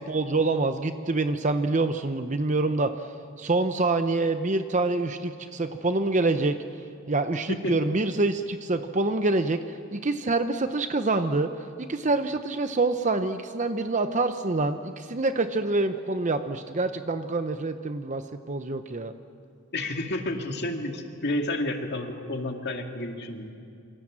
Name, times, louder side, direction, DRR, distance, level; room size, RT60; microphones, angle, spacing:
voice 1, 0.1-2.9 3.4-6.6 7.1-11.5 11.8-18.2 18.5-19.1, right 3 dB, 35° right, 9 dB, 0.8 m, -26 dB
voice 2, 19.7-23.5, left 1 dB, 50° left, 4 dB, 2.3 m, -30 dB
27.5 x 25.0 x 7.5 m, 2.4 s
head